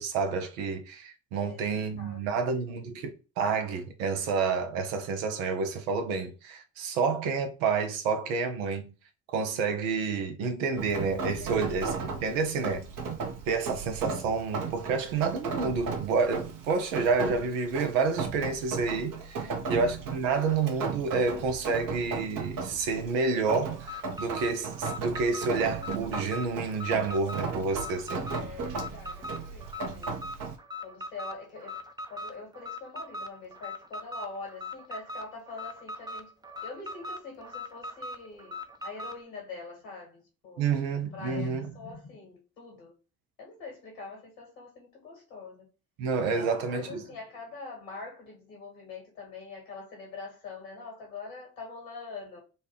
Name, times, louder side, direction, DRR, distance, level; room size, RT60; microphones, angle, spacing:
voice 1, 0.0-8.9 9.3-12.8 13.5-28.3 40.6-41.7 46.0-47.0, right 4 dB, 80° right, 0.7 m, -29 dB
voice 2, 2.0-2.5 11.4-11.5 19.4-19.9 28.3-30.2 30.8-31.8 32.1-36.3 36.6-42.9 43.4-45.7 46.3-52.4, left 4 dB, 85° left, 1.8 m, -44 dB
Rain, 10.8-30.6, right 4 dB, 55° right, 1.0 m, -36 dB
Alarm, 23.8-39.2, left 2 dB, 10° right, 0.6 m, -40 dB
4.1 x 2.3 x 3.3 m
hypercardioid pair, 45°, 39 cm